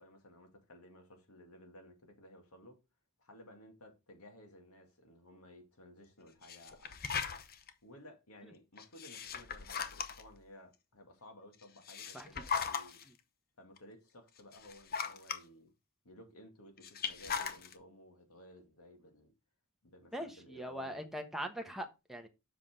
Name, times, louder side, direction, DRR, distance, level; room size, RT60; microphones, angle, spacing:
voice 1, 0.0-2.8 3.2-7.2 7.8-13.0 13.6-15.7 16.0-19.3 19.8-21.1, left 1 dB, 75° left, 2.2 m, -56 dB
sound 1, 6.4-7.7 8.8-10.4 11.6-13.0 13.8-13.9 14.4-15.4 16.8-17.7, left 6 dB, 45° left, 0.8 m, -38 dB
voice 2, 20.1-22.3, equal, ahead, 1.2 m, -41 dB
7.5 x 5.9 x 3.7 m
head